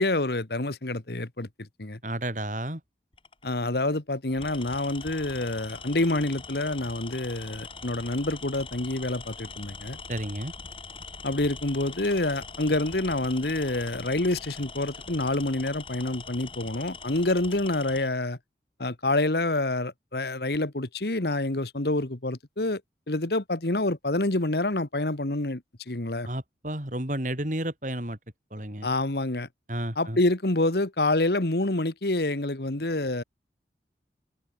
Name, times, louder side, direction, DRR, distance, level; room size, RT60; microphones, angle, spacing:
voice 1, 0.0-2.0 3.4-10.0 11.2-18.4 18.8-22.8 23.1-25.6 25.9-26.3 28.8-29.5 29.9-33.2, left 2 dB, 65° left, 1.6 m, -27 dB
voice 2, 2.0-2.8 10.1-10.5 26.2-28.2 28.5-28.9 29.7-30.2, right 1 dB, 45° right, 5.0 m, -31 dB
Tools, 3.1-3.4 4.3-18.1, left 4 dB, 30° left, 6.5 m, -42 dB
head